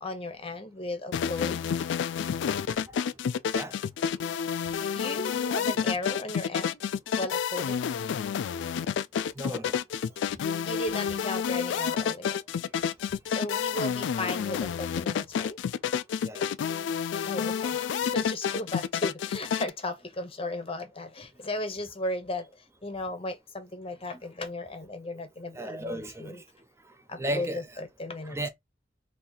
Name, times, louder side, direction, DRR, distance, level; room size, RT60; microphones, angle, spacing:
voice 1, 0.0-1.6 5.0-6.8 7.2-7.8 10.6-12.4 13.3-15.6 17.2-22.5 22.8-26.4 27.1-28.4, left 2 dB, 30° left, 0.8 m, -35 dB
sound 1, 1.1-19.7, left 7 dB, 85° left, 0.3 m, -29 dB
voice 2, 9.4-9.8 16.2-16.5 25.5-26.4 27.2-27.6 28.3-28.5, right 1 dB, 15° right, 0.5 m, -34 dB
2.8 x 2.7 x 3.9 m
head